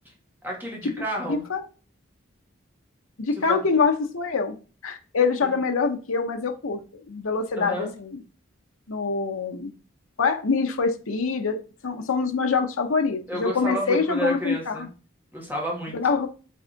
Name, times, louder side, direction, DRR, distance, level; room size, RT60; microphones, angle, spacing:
voice 1, 0.4-1.4 3.5-3.6 7.6-8.0 13.3-14.9 15.3-16.0, equal, 10° right, -2 dB, 1.7 m, -30 dB
voice 2, 1.3-1.6 3.2-4.5 4.8-6.8 7.1-8.2 8.9-9.7 10.2-11.6 11.8-14.9 15.9-16.3, left 4 dB, 90° left, 5 dB, 0.8 m, -25 dB
7.8 x 3.6 x 3.9 m, 0.36 s
head